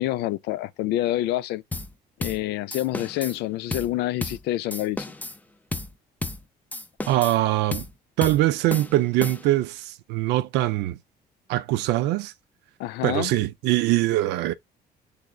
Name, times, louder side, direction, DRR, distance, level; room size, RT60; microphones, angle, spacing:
voice 1, 0.0-1.6 2.2-5.1 12.8-13.3, left 14 dB, 80° left, 0.4 m, -27 dB
sound 1, 1.7-1.9 2.2-2.4 2.7-3.4 3.7-3.9 4.2-4.4 4.7-5.4 5.7-5.9 6.2-6.4 6.7-7.4 7.7-7.9 8.2-8.4 8.7-9.6, left 2 dB, 10° left, 0.5 m, -33 dB
voice 2, 7.1-7.9 8.2-11.0 11.5-12.3 13.0-14.5, right 15 dB, 85° right, 0.5 m, -23 dB
6.4 x 3.4 x 2.2 m
cardioid pair, 110°, 17 cm